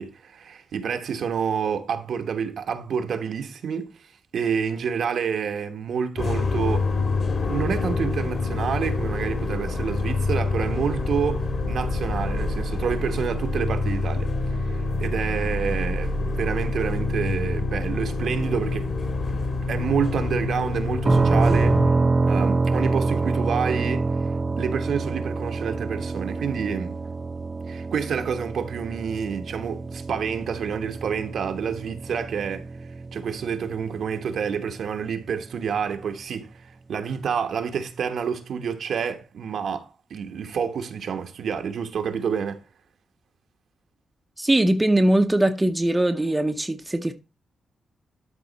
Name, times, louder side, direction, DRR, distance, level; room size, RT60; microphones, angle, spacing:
voice 1, 0.0-3.9 4.3-6.9 7.4-18.9 19.3-19.4 19.7-21.8 22.2-24.1 24.6-27.0 27.7-32.7 33.1-42.6, right 7 dB, 65° right, 1.1 m, -28 dB
sound 1, 6.2-21.9, left 3 dB, 50° left, 2.3 m, -26 dB
sound 2, 21.1-34.7, right 3 dB, 30° right, 0.3 m, -26 dB
voice 2, 44.4-47.1, right 1 dB, 10° right, 0.7 m, -21 dB
12.5 x 4.1 x 4.0 m
cardioid pair, 115°, 0 cm